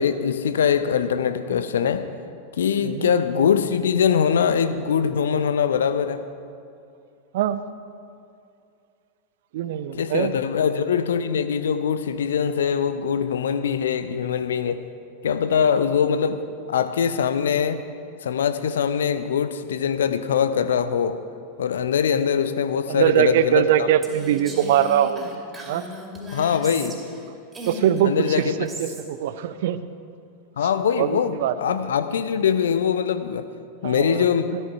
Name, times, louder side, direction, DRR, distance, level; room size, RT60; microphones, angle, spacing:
voice 1, 0.0-2.1 2.6-6.2 9.9-14.8 15.2-16.4 16.7-17.8 18.2-21.2 21.6-23.9 26.3-27.0 28.0-28.5 30.6-33.5 33.8-34.5, left 7 dB, 65° left, 11 dB, 0.7 m, -22 dB
voice 2, 9.5-10.3 22.9-25.2 25.7-25.8 27.7-29.8 31.0-31.5 33.8-34.6, right 11 dB, 55° right, 13 dB, 0.6 m, -22 dB
Female speech woman speaking, 24.0-27.2 27.5-29.1, left 1 dB, 15° right, 2.5 m, -36 dB
13.0 x 13.0 x 4.7 m, 2.4 s
figure-of-eight pair, 90°, 0 cm